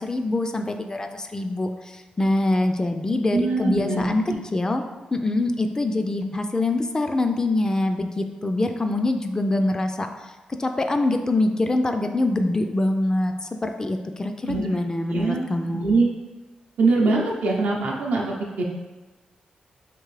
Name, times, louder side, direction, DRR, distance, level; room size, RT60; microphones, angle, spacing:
voice 1, 0.1-4.2 4.5-4.8 5.1-10.1 10.6-13.3 13.6-15.9, left 2 dB, 25° left, 6 dB, 0.3 m, -24 dB
voice 2, 3.3-4.1 14.5-14.7 15.1-15.4 15.7-16.1 16.8-18.6, right 3 dB, 85° right, -1 dB, 0.6 m, -22 dB
3.6 x 2.5 x 3.2 m, 1.3 s
cardioid pair, 75°, 3 cm